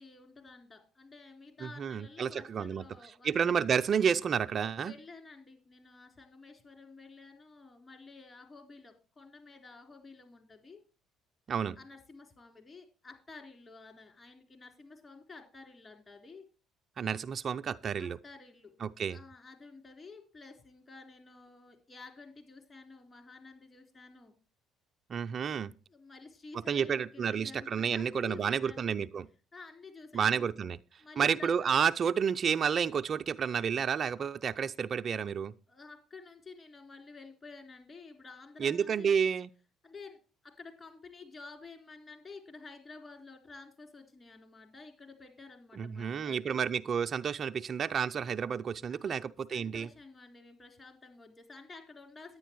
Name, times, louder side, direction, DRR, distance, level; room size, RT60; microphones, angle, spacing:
voice 1, 0.0-3.3 4.8-10.8 11.8-16.4 18.0-18.7 19.1-24.4 25.9-29.0 29.5-30.5 31.0-31.7 35.7-39.2 39.8-46.6 48.9-49.2 49.5-52.4, left 4 dB, 30° left, 3.7 m, -51 dB
voice 2, 1.6-2.8 3.2-4.9 11.5-11.8 17.0-18.2 18.8-19.2 25.1-25.7 26.7-29.2 30.1-30.8 31.2-35.5 38.6-39.5 45.8-49.9, right 7 dB, 50° right, 0.4 m, -30 dB
10.0 x 9.4 x 4.5 m
hypercardioid pair, 60°, 0 cm